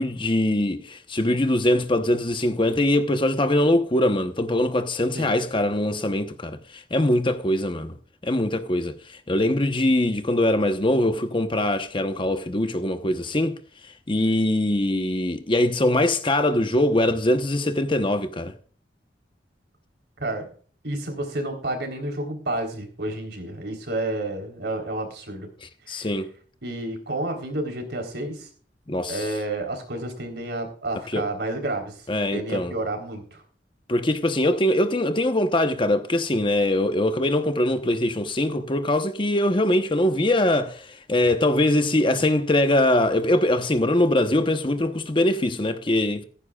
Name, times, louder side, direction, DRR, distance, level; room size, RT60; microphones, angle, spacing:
voice 1, 0.0-7.9 8.2-13.6 14.1-18.5 25.9-26.3 28.9-29.2 31.1-31.2 32.1-32.7 33.9-46.2, left 1 dB, 30° left, 1.0 m, -22 dB
voice 2, 20.8-25.5 25.9-26.0 26.6-28.5 29.1-32.0 32.3-33.4, right 2 dB, 65° right, 3.8 m, -30 dB
15.0 x 15.0 x 2.4 m
head